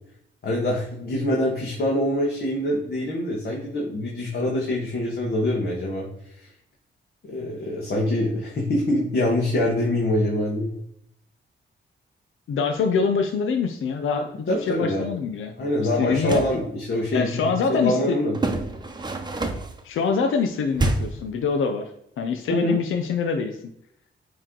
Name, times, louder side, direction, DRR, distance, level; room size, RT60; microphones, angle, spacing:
voice 1, 0.4-6.5 7.2-10.7 14.5-15.1 15.6-17.4 17.7-18.3 22.6-22.8, left 1 dB, 55° left, -3 dB, 1.6 m, -25 dB
voice 2, 12.5-16.4 17.1-18.2 19.8-21.9 22.2-23.6, left 5 dB, 85° left, 5 dB, 0.6 m, -25 dB
sound 1, 16.1-16.6 18.3-19.8 20.7-21.3, right 2 dB, 20° right, 0.8 m, -27 dB
8.8 x 3.2 x 3.8 m, 0.75 s
cardioid pair, 100°, 20 cm